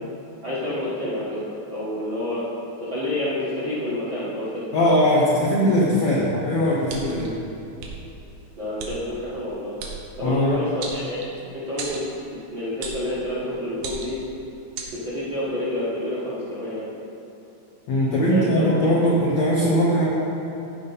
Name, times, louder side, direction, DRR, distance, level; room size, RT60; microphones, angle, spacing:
voice 1, 0.4-2.4 2.8-5.0 8.6-9.7 10.2-11.3 11.5-12.0 12.3-14.2 14.9-16.9 18.3-19.0, left 1 dB, 50° right, -10 dB, 1.4 m, -28 dB
voice 2, 4.7-7.3 10.2-10.6 17.9-20.1, equal, 75° left, -5 dB, 1.6 m, -20 dB
sound 1, 6.9-7.3 7.8-7.9 8.8-8.9 9.8-10.0 10.8-11.4 11.8-12.1 12.8-13.1 13.8-14.2 14.8-14.9, right 5 dB, 80° right, 3.0 m, -34 dB
15.0 x 5.2 x 4.1 m, 2.9 s
omnidirectional pair, 4.4 m